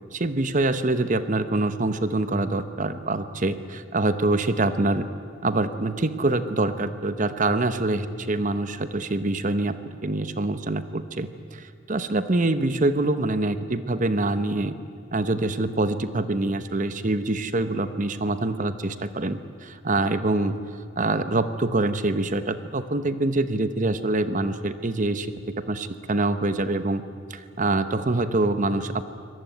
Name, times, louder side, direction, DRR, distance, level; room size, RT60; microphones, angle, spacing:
voice 1, 0.1-5.1 5.4-14.7 15.1-20.6 21.0-25.3 25.7-27.0 27.3-29.0, right 2 dB, 40° right, 11 dB, 1.0 m, -25 dB
24.5 x 19.0 x 9.4 m, 2.3 s
head